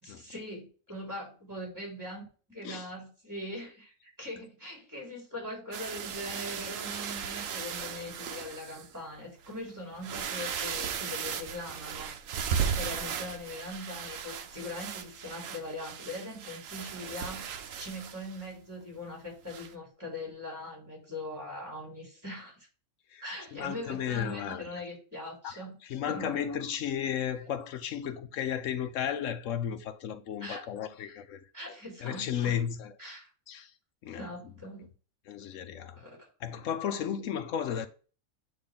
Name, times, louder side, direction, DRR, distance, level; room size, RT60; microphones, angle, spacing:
voice 1, 0.0-12.1 12.6-17.5 17.8-22.5 23.2-25.7 26.1-26.4 30.4-30.7 31.5-32.6 33.0-33.3 34.2-34.9 36.0-36.3, left 1 dB, 15° right, 3.5 m, -41 dB
sound 1, 5.7-8.9 9.4-9.5 9.9-18.5 19.5-19.7, right 7 dB, 70° right, 1.1 m, -36 dB
voice 2, 23.5-24.8 25.4-31.4 32.0-32.9 33.5-33.7 34.0-34.3 35.3-36.0 36.4-37.9, left 9 dB, 70° left, 0.9 m, -34 dB
8.5 x 3.1 x 3.6 m
omnidirectional pair, 1.4 m